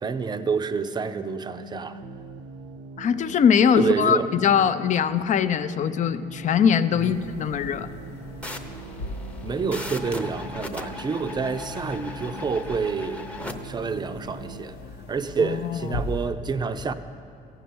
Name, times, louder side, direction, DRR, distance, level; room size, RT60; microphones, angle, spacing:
voice 1, 0.0-2.0 3.8-4.3 6.9-7.2 9.4-13.3 13.6-14.7 15.1-16.9, right 5 dB, 25° right, 10 dB, 0.6 m, -28 dB
sound 1, 1.1-14.6, right 3 dB, 85° right, 0.6 m, -42 dB
voice 2, 3.0-7.9 15.4-15.8, left 7 dB, 45° left, 12 dB, 0.5 m, -21 dB
sound 2, 7.0-16.3, left 2 dB, 80° left, 0.9 m, -39 dB
sound 3, 8.4-13.5, left 2 dB, 5° left, 0.8 m, -38 dB
14.5 x 5.7 x 9.4 m, 2.4 s
cardioid pair, 110°, 17 cm